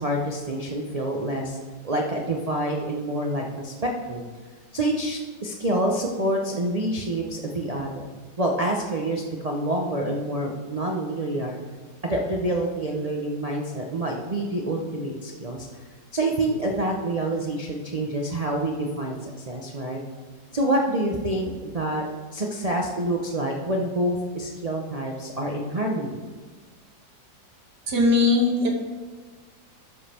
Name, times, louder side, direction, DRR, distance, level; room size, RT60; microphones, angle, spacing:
voice 1, 0.0-1.6 1.8-4.2 4.7-8.1 8.4-11.6 12.0-15.7 16.1-20.0 20.5-22.1 22.3-26.2, right 1 dB, 80° right, 0 dB, 0.3 m, -27 dB
voice 2, 27.9-28.7, left 3 dB, 65° right, 1 dB, 1.8 m, -19 dB
13.0 x 5.3 x 4.3 m, 1.4 s
omnidirectional pair, 2.0 m